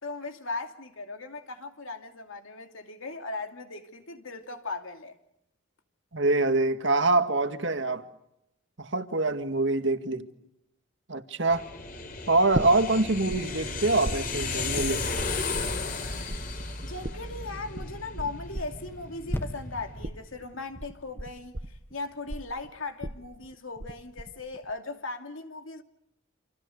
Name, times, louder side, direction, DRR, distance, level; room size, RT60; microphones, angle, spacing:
voice 1, 0.0-5.2 16.8-25.8, left 3 dB, 75° left, 2.7 m, -38 dB
voice 2, 6.1-8.0 8.8-10.3 11.1-11.7 12.3-15.0, right 2 dB, 60° right, 1.9 m, -25 dB
sound 1, 11.5-20.0, left 3 dB, 40° left, 4.7 m, -34 dB
sound 2, 12.5-13.4 13.7-16.0 16.3-23.9 24.2-24.7, right 1 dB, 40° right, 1.3 m, -36 dB
sound 3, 19.3-22.9 23.5-23.6, equal, 10° left, 1.3 m, -39 dB
29.0 x 27.5 x 6.6 m
head